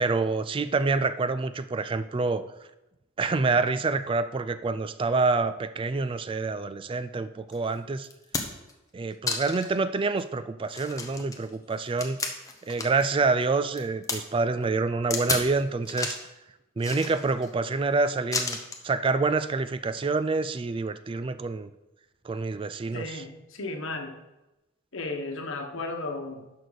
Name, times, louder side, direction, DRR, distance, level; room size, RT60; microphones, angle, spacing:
voice 1, 0.0-2.4 3.2-8.1 8.9-12.2 12.6-16.2 16.8-18.6 18.8-21.7 22.2-23.2, right 3 dB, 25° right, 12 dB, 0.3 m, -27 dB
sound 1, 7.5-7.6 8.0-8.7 9.3-9.7 10.2-10.3 10.7-13.1 13.4-14.2 15.1-15.5 15.9-16.3 16.8-17.5 18.3-18.9 19.9-20.1, left 4 dB, 15° left, 0.9 m, -32 dB
voice 2, 22.9-24.2 24.9-26.5, left 2 dB, 75° left, 4 dB, 1.3 m, -34 dB
11.0 x 6.5 x 4.1 m, 0.97 s
head